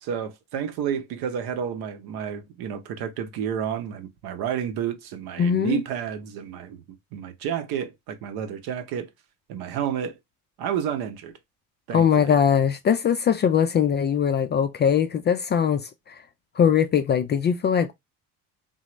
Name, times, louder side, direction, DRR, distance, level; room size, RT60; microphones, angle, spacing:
voice 1, 0.0-9.1 9.5-10.1 10.6-11.3 11.9-12.3, right 8 dB, 60° right, 0.8 m, -30 dB
voice 2, 5.4-5.8 11.9-16.1 16.6-17.9, left 7 dB, 25° left, 0.3 m, -21 dB
3.9 x 2.1 x 3.0 m
figure-of-eight pair, 50°, 43 cm